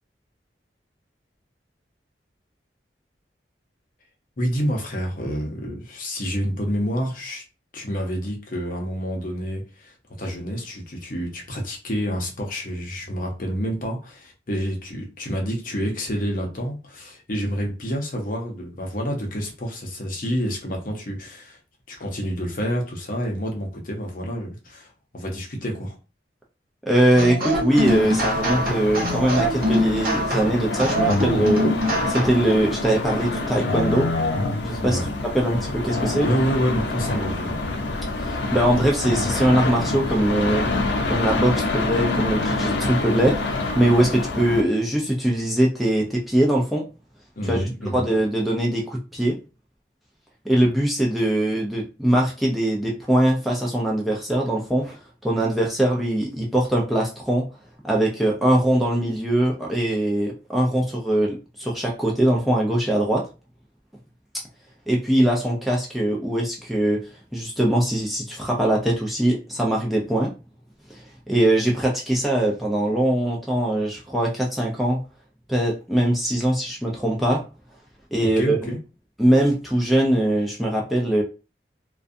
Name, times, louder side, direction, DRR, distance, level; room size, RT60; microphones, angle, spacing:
voice 1, 4.4-7.4 7.7-21.6 21.9-26.0 34.8-35.1 36.2-37.6 47.4-48.1 78.2-78.8, equal, 50° left, 0.7 m, -28 dB
voice 2, 26.9-31.7 32.1-34.1 34.6-35.0 35.3-36.3 38.2-40.7 41.1-46.8 47.5-47.7 47.9-49.4 50.5-57.5 57.8-63.3 64.9-67.0 67.3-70.3 70.9-75.0 75.5-77.4 78.1-78.6 79.2-81.2, right 1 dB, ahead, 0.4 m, -22 dB
sound 1, 27.2-32.5, equal, 50° right, 0.6 m, -24 dB
sound 2, 27.7-44.6, left 2 dB, 90° left, 0.5 m, -26 dB
2.5 x 2.2 x 2.5 m
head